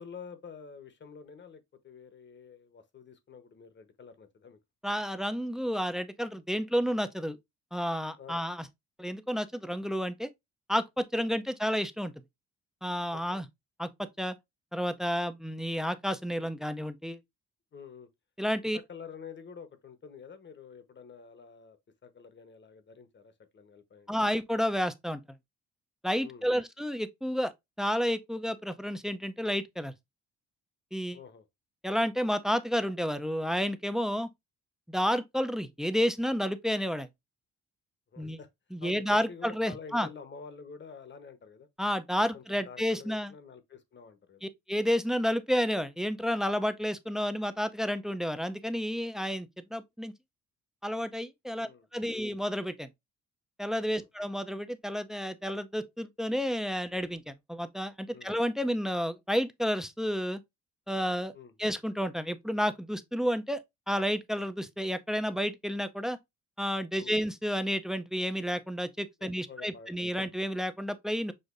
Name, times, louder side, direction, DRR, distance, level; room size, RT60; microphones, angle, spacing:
voice 1, 0.0-4.6 8.2-8.4 11.2-11.3 13.1-13.4 17.7-18.1 18.9-21.8 22.0-24.1 26.2-26.6 31.1-31.4 38.1-38.5 38.8-41.7 42.2-44.4 51.6-52.3 53.9-54.1 58.1-58.3 61.3-61.5 67.0-67.2 69.2-70.1, left 6 dB, 40° left, 1.0 m, -48 dB
voice 2, 4.8-7.4 7.7-8.7 9.0-10.3 10.7-12.1 12.8-13.5 13.8-14.4 14.7-17.2 18.4-18.8 24.1-25.2 26.0-27.5 27.8-29.9 30.9-31.2 31.8-34.3 34.9-37.1 38.2-38.4 38.7-40.1 41.8-43.3 44.4-50.1 50.8-52.9 53.6-60.4 60.9-61.3 61.6-63.6 63.9-66.2 66.6-71.3, equal, ahead, 0.5 m, -31 dB
6.5 x 2.5 x 2.5 m
cardioid pair, 90°, 30 cm